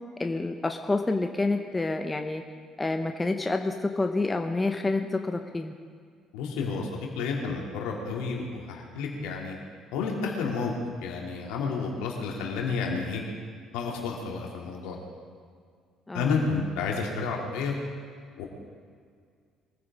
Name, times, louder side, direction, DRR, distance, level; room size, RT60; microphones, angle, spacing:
voice 1, 0.2-2.4 2.8-5.7 16.1-16.3, left 2 dB, 20° left, 5 dB, 1.1 m, -28 dB
voice 2, 6.3-9.6 9.9-10.7 11.0-13.2 13.7-15.0 16.1-17.7 18.4-18.5, left 4 dB, 70° left, -1 dB, 2.8 m, -30 dB
23.5 x 15.0 x 3.8 m, 2.1 s
hypercardioid pair, 55°, 0 cm